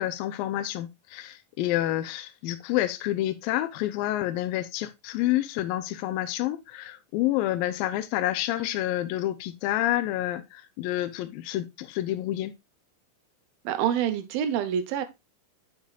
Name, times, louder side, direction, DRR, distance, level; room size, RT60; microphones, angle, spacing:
voice 1, 0.0-12.5, left 14 dB, 85° left, 2.3 m, -28 dB
voice 2, 13.6-15.0, right 9 dB, 80° right, 2.7 m, -26 dB
8.8 x 7.3 x 2.3 m
omnidirectional pair, 4.2 m